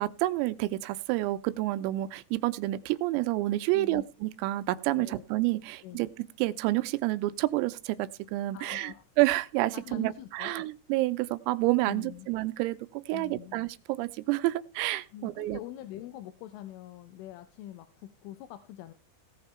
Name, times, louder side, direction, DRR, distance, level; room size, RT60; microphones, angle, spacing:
voice 1, 0.0-15.6, right 18 dB, 90° right, 13 dB, 3.4 m, -29 dB
voice 2, 8.5-9.0 9.7-10.7 11.9-12.3 13.1-13.6 15.1-18.9, left 13 dB, 80° left, 9 dB, 3.3 m, -44 dB
17.5 x 6.8 x 4.3 m, 0.32 s
omnidirectional pair, 6.0 m